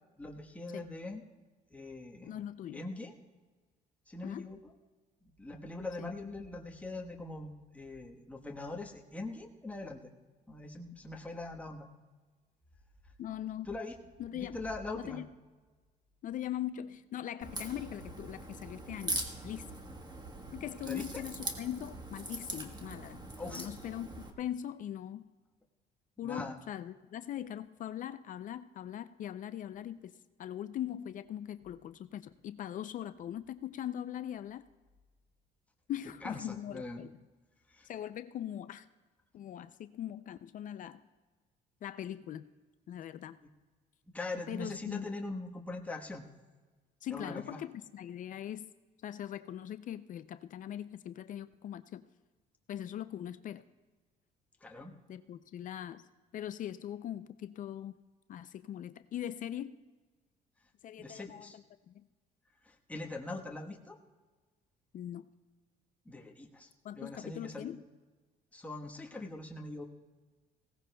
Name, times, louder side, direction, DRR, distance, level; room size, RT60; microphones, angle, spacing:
voice 1, 0.2-1.2 1.7-2.4 2.7-3.1 4.1-4.6 5.4-10.0 10.5-11.9 13.7-13.9 14.3-15.2 20.8-21.2 23.4-23.7 26.2-26.6 36.2-37.0 37.7-37.9 44.1-46.3 47.1-47.6 54.6-54.9 61.0-61.6 62.7-63.9 66.1-66.7 66.9-67.7 68.5-69.8, left 2 dB, 10° left, 0 dB, 1.2 m, -42 dB
voice 2, 2.2-2.8 4.2-4.5 6.0-6.1 13.2-13.7 14.2-14.7 14.9-15.3 16.2-19.6 20.5-24.1 24.4-25.2 26.2-30.1 30.4-34.7 35.9-37.2 37.8-38.9 39.3-41.0 41.8-42.5 42.9-43.4 44.5-45.1 47.0-48.7 49.0-52.0 52.7-53.6 55.1-56.0 56.3-58.0 58.3-59.8 60.8-62.1 64.9-65.3 66.8-67.8, left 11 dB, 50° left, 12 dB, 0.4 m, -41 dB
Crack, 17.4-24.3, right 2 dB, 25° right, 1.3 m, -42 dB
20.0 x 17.0 x 2.2 m, 1.3 s
cardioid pair, 110°, 17 cm